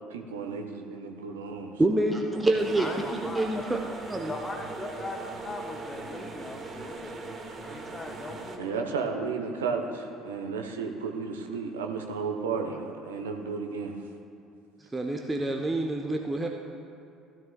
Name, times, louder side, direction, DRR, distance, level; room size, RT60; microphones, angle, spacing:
voice 1, 0.0-1.8 8.6-14.0 15.4-15.5, right 5 dB, 70° right, 3 dB, 0.9 m, -33 dB
voice 2, 1.8-3.8 4.1-4.3 14.9-16.5, right 2 dB, 15° right, 2 dB, 0.8 m, -27 dB
sound 1, 2.6-8.6, right 3 dB, 30° right, 1.3 m, -40 dB
voice 3, 2.7-4.0 4.3-7.1 7.6-9.2 11.5-11.6, left 2 dB, 20° left, 2 dB, 1.2 m, -39 dB
16.0 x 12.5 x 2.2 m, 2.5 s
figure-of-eight pair, 55°, 0 cm